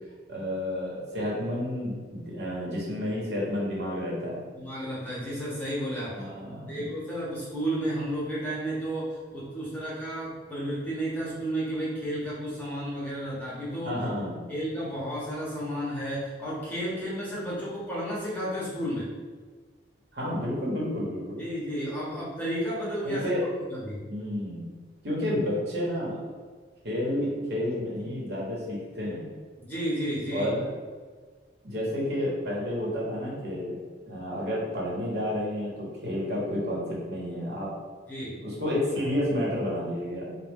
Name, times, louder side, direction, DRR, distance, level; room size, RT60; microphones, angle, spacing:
voice 1, 0.3-4.4 6.1-6.9 13.8-14.3 20.1-21.4 23.0-23.4 24.1-24.6 25.0-26.2 26.8-29.3 30.3-30.6 31.6-33.8 34.0-37.7 38.4-40.4, left 1 dB, 65° right, -5 dB, 1.2 m, -30 dB
voice 2, 4.5-6.3 6.7-14.0 14.5-19.1 21.4-24.0 29.6-30.5 38.1-38.4, right 1 dB, 10° left, -8 dB, 1.0 m, -32 dB
4.1 x 2.3 x 3.5 m, 1.5 s
head